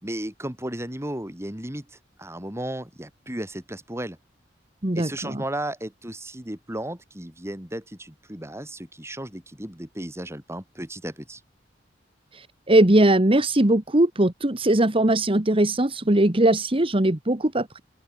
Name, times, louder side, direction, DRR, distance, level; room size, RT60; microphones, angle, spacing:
voice 1, 0.0-4.2 4.9-11.4, right 1 dB, 15° right, 4.0 m, -34 dB
voice 2, 4.8-5.4 12.3-17.8, right 1 dB, 30° right, 1.7 m, -20 dB
open air
head